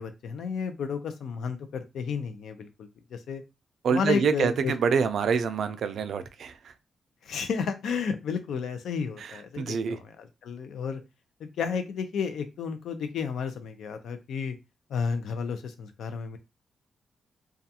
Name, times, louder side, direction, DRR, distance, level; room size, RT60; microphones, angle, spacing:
voice 1, 0.0-3.4 3.9-4.7 7.2-9.8 10.4-11.0 11.4-14.5 14.9-16.4, left 6 dB, 80° left, 0.4 m, -32 dB
voice 2, 3.8-6.7 9.2-10.0, right 6 dB, 65° right, 0.3 m, -26 dB
2.4 x 2.3 x 2.7 m
wide cardioid pair, 155°, 0 cm